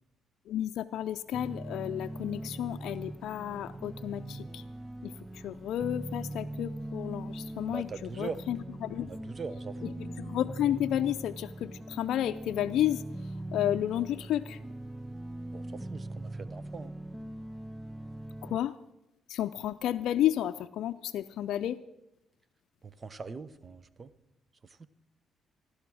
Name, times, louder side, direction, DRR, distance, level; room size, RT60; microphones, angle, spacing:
voice 1, 0.5-4.6 5.0-5.1 5.4-7.9 8.2-9.1 10.0-13.0 13.5-14.6 18.4-18.7 19.3-21.8, left 12 dB, 80° left, 8 dB, 0.4 m, -31 dB
sound 1, 1.3-18.6, right 1 dB, 10° right, 0.5 m, -41 dB
voice 2, 7.7-8.4 9.0-10.0 15.5-16.9 22.8-24.1 24.6-24.9, right 4 dB, 35° right, 16 dB, 0.8 m, -42 dB
15.5 x 12.0 x 6.2 m, 0.92 s
cardioid pair, 90°, 0 cm